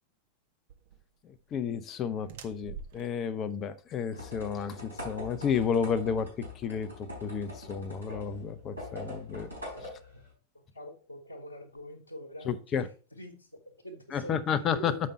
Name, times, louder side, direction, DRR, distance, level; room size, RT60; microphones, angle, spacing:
sound 1, 0.7-6.8, right 6 dB, 55° right, 1.0 m, -50 dB
voice 1, 1.2-6.3 6.5-6.9 7.2-9.5 12.5-12.9 14.1-14.9, left 7 dB, 30° left, 0.6 m, -31 dB
sound 2, 4.1-10.3, left 1 dB, 85° right, 4.4 m, -43 dB
voice 2, 10.5-12.8 13.1-15.0, equal, 85° left, 1.2 m, -45 dB
7.5 x 5.2 x 4.2 m
figure-of-eight pair, 90°, 0 cm